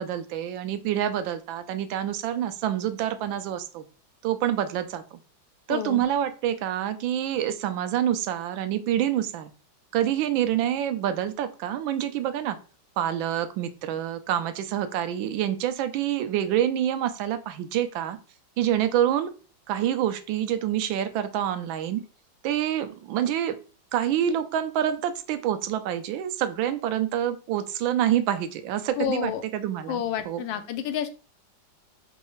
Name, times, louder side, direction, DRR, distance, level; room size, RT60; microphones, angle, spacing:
voice 1, 0.0-3.8 4.2-5.2 5.7-9.5 9.9-12.6 13.0-18.2 18.6-19.3 19.7-22.0 22.4-23.6 23.9-30.4, right 10 dB, 80° right, 10 dB, 1.3 m, -27 dB
voice 2, 5.7-6.0 29.0-29.4 29.9-31.1, left 9 dB, 80° left, 9 dB, 1.4 m, -29 dB
4.6 x 3.1 x 3.0 m, 0.35 s
omnidirectional pair, 2.1 m